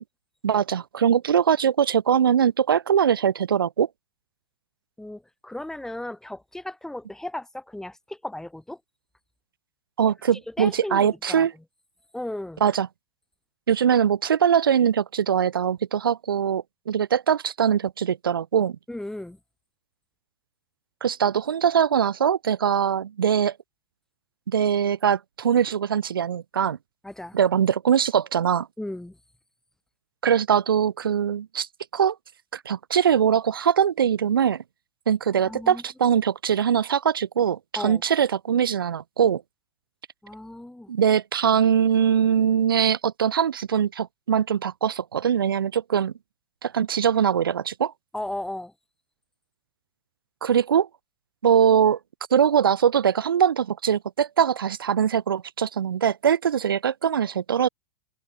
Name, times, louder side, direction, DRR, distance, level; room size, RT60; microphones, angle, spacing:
voice 1, 0.4-3.9 10.0-11.5 12.6-12.9 13.7-18.8 21.0-23.6 24.5-26.8 27.3-28.7 30.2-31.7 31.9-32.2 32.5-34.6 35.1-39.4 40.9-46.1 46.6-47.9 50.4-50.9 51.4-52.0 52.3-57.7, right 8 dB, 85° right, 0.8 m, -22 dB
voice 2, 5.0-8.8 10.5-11.5 12.1-12.6 18.9-19.4 27.0-27.4 28.8-29.2 35.4-35.8 37.7-38.0 40.2-40.9 48.1-48.7, left 1 dB, 5° left, 2.4 m, -35 dB
hypercardioid pair, 105°, 12 cm